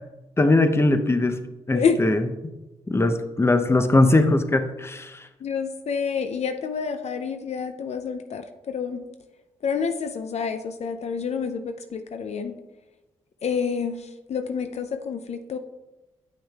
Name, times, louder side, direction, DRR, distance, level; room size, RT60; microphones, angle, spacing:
voice 1, 0.4-1.4 1.7-2.3 2.9-5.3, left 2 dB, 20° left, 8 dB, 0.7 m, -20 dB
voice 2, 1.7-2.2 5.4-9.1 9.6-12.6 13.4-15.6, left 6 dB, 60° left, 8 dB, 0.5 m, -28 dB
8.5 x 6.1 x 2.3 m, 1.1 s
supercardioid pair, 45°, 13 cm